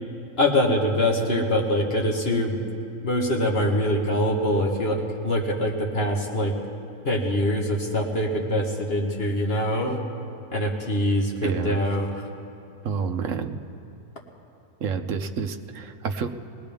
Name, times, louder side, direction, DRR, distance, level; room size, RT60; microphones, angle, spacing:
voice 1, 0.4-2.6 3.0-6.5 7.0-10.0 10.5-12.3, left 1 dB, 45° left, 0 dB, 1.5 m, -24 dB
voice 2, 11.4-11.8 12.8-13.6 14.8-16.3, right 6 dB, 65° right, 7 dB, 1.1 m, -29 dB
21.0 x 19.5 x 3.5 m, 2.7 s
omnidirectional pair, 1.6 m